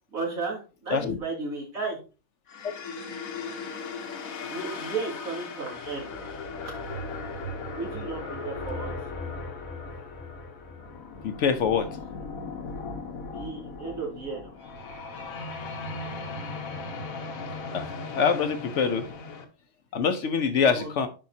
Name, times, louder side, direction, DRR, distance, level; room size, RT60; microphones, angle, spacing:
voice 1, 0.1-2.0 4.4-6.3 7.1-7.2 7.7-8.9 13.2-14.5 20.5-20.9, right 4 dB, 80° right, 3.1 m, -34 dB
sound 1, 2.5-19.4, left 3 dB, 80° left, 1.4 m, -37 dB
voice 2, 11.2-11.9 17.7-17.9 18.2-19.1 19.9-21.1, left 6 dB, 65° left, 1.0 m, -24 dB
9.0 x 5.6 x 2.8 m
omnidirectional pair, 1.5 m